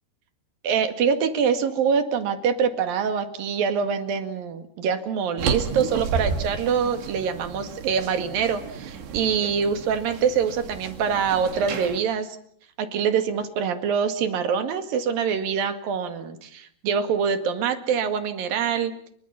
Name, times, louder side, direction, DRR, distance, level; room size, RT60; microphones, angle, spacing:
voice 1, 0.6-12.4 12.8-18.9, right 6 dB, 65° right, 8 dB, 3.6 m, -25 dB
sound 1, 5.4-12.0, right 6 dB, 90° right, 4.7 m, -32 dB
30.0 x 24.0 x 5.8 m, 0.63 s
omnidirectional pair, 4.7 m